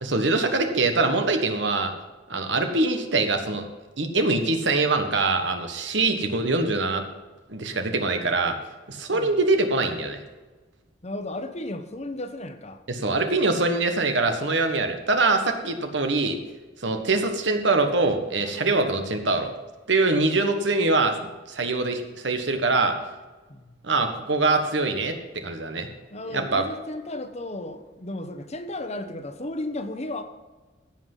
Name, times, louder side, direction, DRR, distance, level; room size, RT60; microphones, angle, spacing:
voice 1, 0.0-1.9 2.3-3.7 4.0-7.0 7.5-8.5 8.9-10.2 12.9-16.4 16.8-19.5 19.9-21.2 21.5-22.9 23.8-25.9 26.3-26.6, right 3 dB, 70° right, 6 dB, 1.5 m, -23 dB
voice 2, 11.0-12.8 20.1-20.4 23.5-23.7 26.1-30.2, left 1 dB, 35° left, 8 dB, 1.0 m, -34 dB
15.5 x 5.8 x 5.6 m, 1.2 s
head